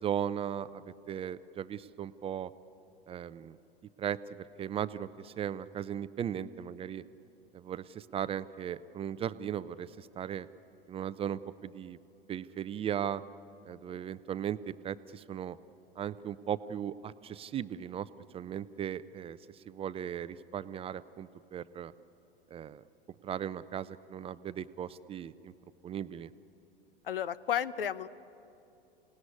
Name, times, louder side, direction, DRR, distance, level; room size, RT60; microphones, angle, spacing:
voice 1, 0.0-2.5 3.1-3.6 4.0-7.0 7.5-10.5 10.9-12.0 12.3-13.2 13.6-15.6 16.0-18.1 18.3-21.9 22.5-22.8 23.2-25.5 25.8-26.3, right 9 dB, 20° right, 15 dB, 0.5 m, -37 dB
voice 2, 27.0-28.1, left 9 dB, 70° left, 18 dB, 0.8 m, -32 dB
27.5 x 18.5 x 9.7 m, 2.9 s
figure-of-eight pair, 90°, 29 cm